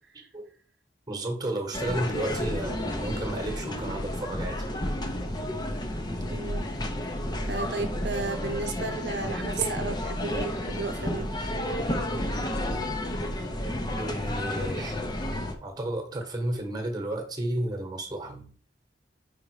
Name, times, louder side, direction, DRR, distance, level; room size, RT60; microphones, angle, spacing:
voice 1, 0.1-0.5 1.1-4.6 14.0-15.0 15.6-18.5, right 1 dB, 20° right, 1.3 m, -32 dB
sound 1, 1.7-15.5, left 1 dB, 25° left, 0.8 m, -31 dB
voice 2, 6.3-6.6 7.4-11.8, right 4 dB, 70° right, 0.8 m, -34 dB
5.3 x 5.0 x 4.8 m
head